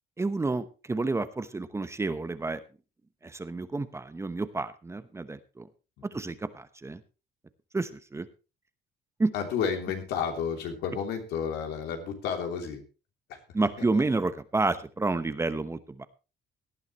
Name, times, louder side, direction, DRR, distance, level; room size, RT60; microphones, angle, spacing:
voice 1, 0.2-2.6 3.2-5.7 6.1-7.0 7.7-8.3 9.2-9.3 13.5-16.1, right 3 dB, 15° right, 12 dB, 0.9 m, -30 dB
voice 2, 9.3-12.8 13.3-13.4 13.9-14.0, left 7 dB, 80° left, 4 dB, 3.0 m, -31 dB
18.0 x 10.5 x 3.1 m, 0.31 s
cardioid pair, 110°, 17 cm